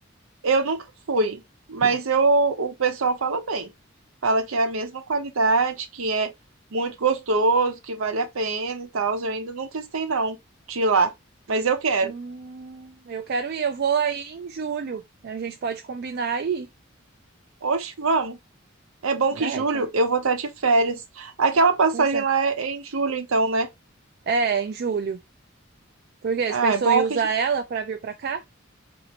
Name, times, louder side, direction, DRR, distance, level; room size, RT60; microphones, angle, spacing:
voice 1, 0.4-1.4 1.7-3.7 4.2-6.3 6.7-10.4 10.7-11.1 11.5-12.1 17.6-18.4 19.0-23.7 26.5-27.2, right 3 dB, 90° right, 0.7 m, -23 dB
voice 2, 12.0-16.7 19.4-19.9 21.9-22.2 24.3-25.2 26.2-28.4, right 6 dB, 50° right, 0.4 m, -27 dB
4.2 x 2.6 x 2.8 m
head